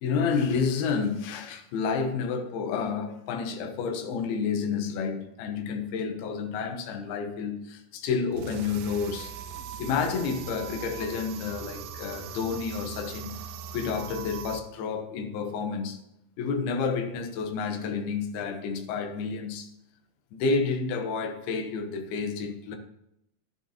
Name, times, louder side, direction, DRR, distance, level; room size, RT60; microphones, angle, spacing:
voice 1, 0.0-9.3 9.8-16.0 16.4-19.7 20.3-22.8, left 5 dB, 70° left, 2.4 m, -30 dB
sound 1, 8.3-14.6, right 8 dB, 85° right, 2.4 m, -40 dB
11.0 x 10.5 x 2.9 m
omnidirectional pair, 5.6 m